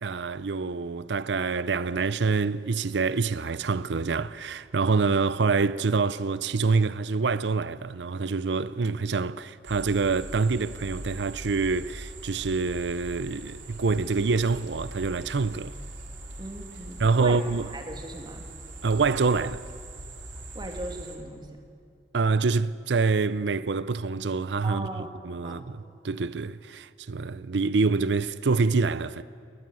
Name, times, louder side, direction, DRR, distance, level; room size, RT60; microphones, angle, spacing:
voice 1, 0.0-15.7 17.0-17.7 18.8-19.7 22.1-29.2, right 4 dB, 70° right, 0.6 m, -26 dB
sound 1, 9.6-21.2, right 1 dB, 90° right, 3.5 m, -41 dB
voice 2, 16.4-17.4 17.7-18.5 20.5-21.5 24.6-25.1 25.4-25.6, right 1 dB, 25° right, 2.7 m, -38 dB
21.0 x 20.5 x 9.1 m
head